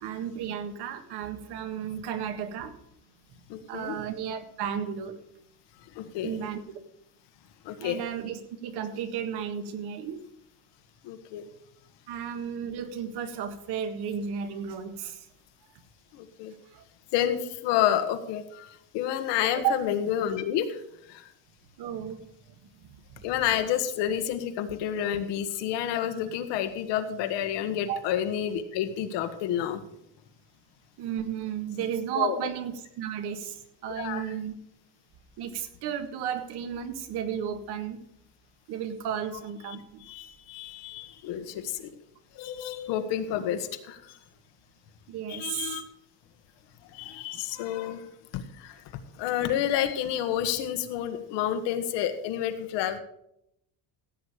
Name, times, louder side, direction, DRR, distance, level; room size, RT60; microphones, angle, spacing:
voice 1, 0.0-2.8 3.7-5.2 6.2-6.6 7.8-10.3 12.1-15.3 16.7-16.8 19.5-19.8 21.8-22.3 22.9-23.2 27.9-28.0 31.0-34.5 35.4-38.0 38.7-40.0 45.1-45.8, right 8 dB, 70° right, 8 dB, 1.8 m, -33 dB
voice 2, 3.5-4.0 5.9-6.5 7.6-8.0 11.0-11.5 16.1-16.5 17.1-20.8 21.1-21.3 23.2-29.8 32.1-32.5 33.9-34.3 39.7-39.8 40.0-41.9 42.3-44.2 45.3-45.8 46.9-48.1 48.3-48.8 49.2-53.0, left 10 dB, 80° left, 8 dB, 1.6 m, -30 dB
15.5 x 8.5 x 4.9 m, 0.76 s
cardioid pair, 170°, 42 cm